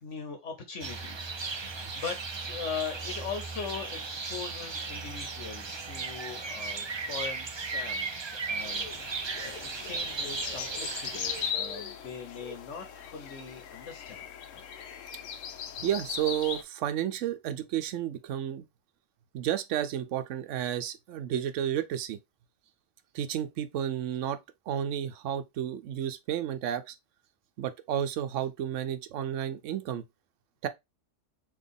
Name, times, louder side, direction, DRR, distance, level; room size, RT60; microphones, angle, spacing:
voice 1, 0.0-14.2 14.5-14.7, left 6 dB, 75° left, 1.3 m, -41 dB
sound 1, 0.8-11.5, right 4 dB, 50° right, 0.3 m, -36 dB
sound 2, 8.6-16.6, left 7 dB, 90° left, 1.0 m, -39 dB
voice 2, 15.8-18.7 19.3-22.2 23.1-24.4 24.7-27.0 27.6-30.0 30.6-30.7, right 10 dB, 80° right, 0.9 m, -32 dB
4.0 x 2.9 x 3.5 m
omnidirectional pair, 1.3 m